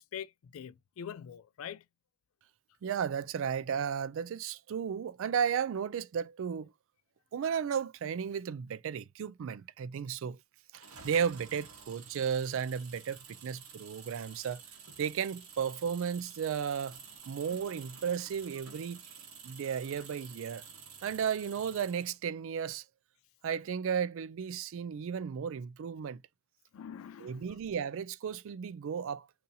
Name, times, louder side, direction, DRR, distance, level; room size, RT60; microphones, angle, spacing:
voice 1, 0.0-1.8 26.7-27.5, left 8 dB, 75° left, 0.3 m, -44 dB
voice 2, 2.8-6.7 7.3-10.4 10.7-14.6 15.0-17.0 17.3-19.0 19.4-20.6 21.0-22.8 23.4-26.2 27.2-29.3, right 7 dB, 65° right, 0.3 m, -34 dB
sound 1, 10.7-22.1, right 6 dB, 90° right, 1.1 m, -51 dB
2.8 x 2.7 x 3.8 m
head